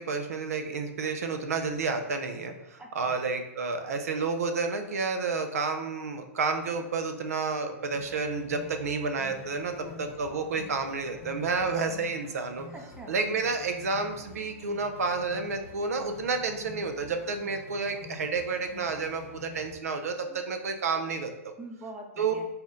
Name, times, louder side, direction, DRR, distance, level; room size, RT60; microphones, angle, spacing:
voice 1, 0.0-12.7 13.1-21.5 22.2-22.3, right 4 dB, 80° right, 6 dB, 0.5 m, -30 dB
voice 2, 2.8-3.2 9.7-10.0 12.7-13.1 20.3-20.4 21.6-22.5, right 2 dB, 10° right, 2 dB, 0.6 m, -44 dB
sound 1, 7.9-19.8, left 3 dB, 60° left, 0.8 m, -48 dB
4.2 x 2.0 x 3.6 m, 0.97 s
hypercardioid pair, 120°, 8 cm